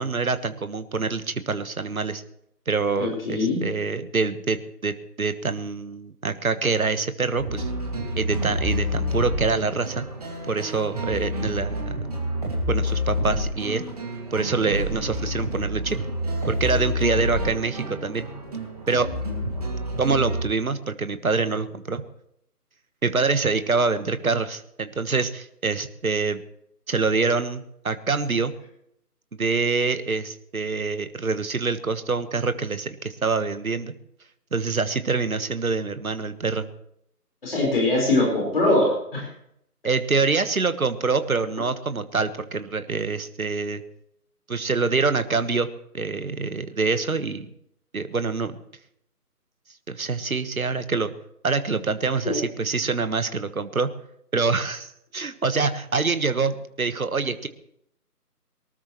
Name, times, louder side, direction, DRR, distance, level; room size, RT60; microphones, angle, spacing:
voice 1, 0.0-2.2 2.7-7.7 8.2-10.0 10.5-12.0 12.7-13.9 14.3-16.0 16.4-18.3 18.9-19.1 20.0-22.0 23.0-26.4 26.9-28.5 29.4-33.9 34.5-36.7 39.8-43.8 44.5-45.7 45.9-47.5 47.9-48.6 49.9-51.1 51.4-53.9 54.3-57.5, right 4 dB, 60° right, 11 dB, 1.4 m, -25 dB
voice 2, 3.0-3.6 37.4-39.3 52.2-52.3, left 2 dB, 35° left, -2 dB, 4.9 m, -22 dB
sound 1, 7.4-20.4, equal, 25° right, 2.3 m, -28 dB
23.5 x 13.0 x 3.2 m, 0.74 s
figure-of-eight pair, 165°, 47 cm